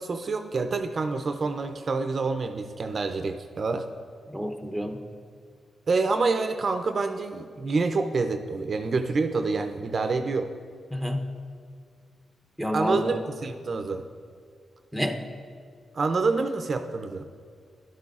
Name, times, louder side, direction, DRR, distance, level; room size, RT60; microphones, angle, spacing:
voice 1, 0.0-3.9 5.9-10.5 12.7-14.0 15.9-17.2, right 4 dB, 45° right, 7 dB, 0.5 m, -27 dB
voice 2, 4.3-5.0 10.9-11.3 12.6-13.0 14.9-15.2, equal, ahead, 3 dB, 0.7 m, -29 dB
12.0 x 11.5 x 2.4 m, 2.1 s
cardioid pair, 100°, 0 cm